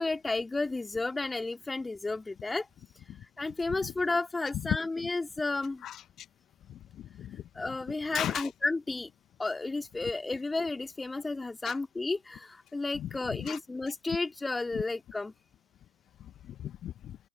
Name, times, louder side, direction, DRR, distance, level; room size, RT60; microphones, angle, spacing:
voice 1, 0.0-2.7 3.4-5.8 7.5-9.1 9.4-15.3, left 3 dB, 10° left, 2.6 m, -32 dB
voice 2, 6.7-7.8 8.1-8.5 11.6-11.8 12.9-13.6 16.5-17.2, left 11 dB, 30° left, 1.5 m, -36 dB
open air
figure-of-eight pair, 90°, 0 cm